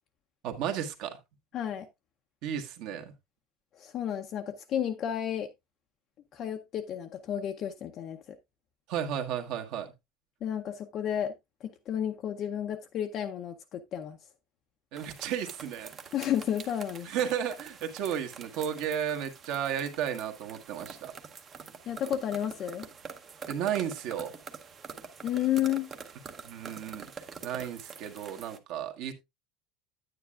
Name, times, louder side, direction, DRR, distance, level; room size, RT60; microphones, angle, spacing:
voice 1, 0.4-1.2 2.4-3.1 8.9-9.9 14.9-16.0 17.0-21.1 23.5-24.3 26.4-29.1, right 9 dB, 50° right, 1.4 m, -33 dB
voice 2, 1.5-1.9 3.7-5.5 6.3-8.4 10.4-11.3 11.6-14.2 16.1-17.1 21.9-22.9 25.2-25.9, left 10 dB, 30° left, 0.6 m, -32 dB
sound 1, 15.0-28.6, right 5 dB, 20° right, 0.8 m, -46 dB
9.8 x 9.5 x 2.4 m
cardioid pair, 180°, 0 cm